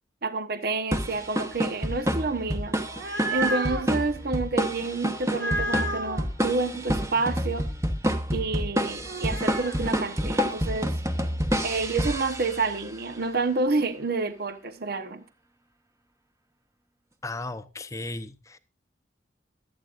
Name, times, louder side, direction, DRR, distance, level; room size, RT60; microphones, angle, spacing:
voice 1, 0.2-2.8 3.3-7.7 8.3-11.0 11.6-15.2, right 3 dB, 55° right, 0.9 m, -29 dB
sound 1, 0.9-12.9, equal, 15° right, 1.0 m, -28 dB
sound 2, 2.7-3.9 5.3-6.2 9.1-9.8, right 2 dB, 75° right, 1.7 m, -31 dB
voice 2, 17.2-18.6, left 2 dB, 15° left, 0.7 m, -35 dB
23.5 x 8.8 x 2.5 m
head